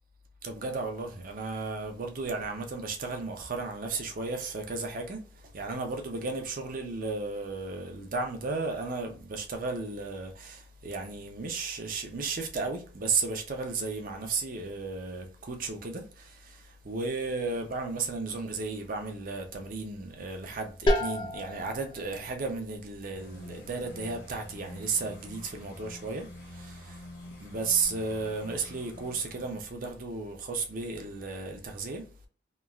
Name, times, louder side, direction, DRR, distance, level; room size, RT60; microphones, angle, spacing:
voice 1, 0.4-5.2 5.5-27.0 27.4-32.3, right 4 dB, 50° right, 0.5 m, -34 dB
sound 1, 20.9-26.4, left 1 dB, 25° left, 0.4 m, -34 dB
sound 2, 23.1-29.6, left 1 dB, 70° left, 0.9 m, -48 dB
3.0 x 2.3 x 2.3 m
head